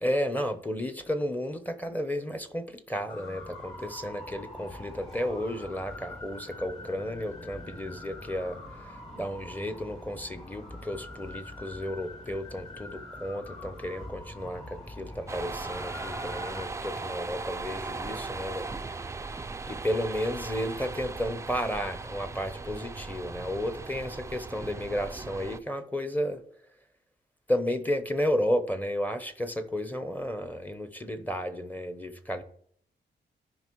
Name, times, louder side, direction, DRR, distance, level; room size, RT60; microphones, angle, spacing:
voice 1, 0.0-8.6 9.1-18.7 19.7-26.4 27.5-32.4, equal, 10° left, 0.8 m, -32 dB
sound 1, 3.1-16.7, left 1 dB, 35° left, 2.3 m, -44 dB
sound 2, 15.3-25.6, right 3 dB, 15° right, 0.3 m, -38 dB
14.5 x 5.2 x 3.1 m
wide cardioid pair, 145°, 18 cm